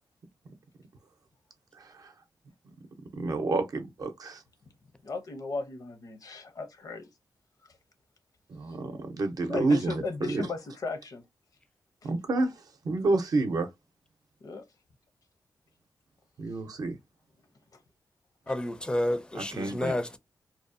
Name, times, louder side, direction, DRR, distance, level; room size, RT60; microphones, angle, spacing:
voice 1, 3.2-4.4 8.5-8.9 9.2-10.0 10.3-10.4 12.0-12.5 12.9-13.7 16.4-17.0 19.6-20.0, right 2 dB, 60° right, 0.6 m, -28 dB
voice 2, 5.0-7.1 9.5-11.2 12.0-12.1 14.4-14.6 18.5-18.6, left 3 dB, 60° left, 0.7 m, -36 dB
voice 3, 18.5-20.2, left 1 dB, 15° left, 0.4 m, -30 dB
2.7 x 2.0 x 2.5 m
wide cardioid pair, 90°, 7 cm